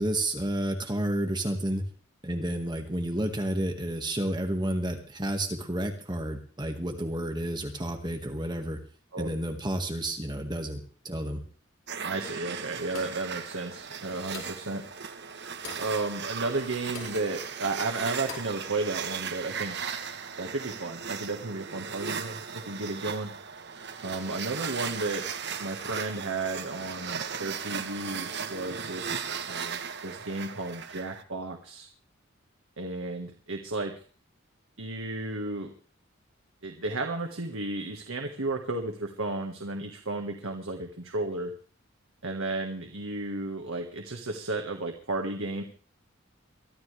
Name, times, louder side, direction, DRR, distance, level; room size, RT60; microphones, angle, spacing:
voice 1, 0.0-1.8 2.2-8.8 9.2-11.4, right 1 dB, 20° right, 4 dB, 1.8 m, -31 dB
sound 1, 11.9-31.2, right 6 dB, 55° right, 1.1 m, -37 dB
voice 2, 12.0-14.8 15.8-19.8 20.4-23.3 24.0-25.3 25.6-31.9 32.8-33.9 34.8-35.7 36.6-41.5 42.2-45.6, right 2 dB, 80° right, 3 dB, 1.7 m, -33 dB
sound 2, 12.9-13.3 14.3-14.7 15.6-15.9 16.9-17.2 18.3-18.6, left 4 dB, 75° left, 4.3 m, -42 dB
23.5 x 13.0 x 3.4 m, 0.41 s
head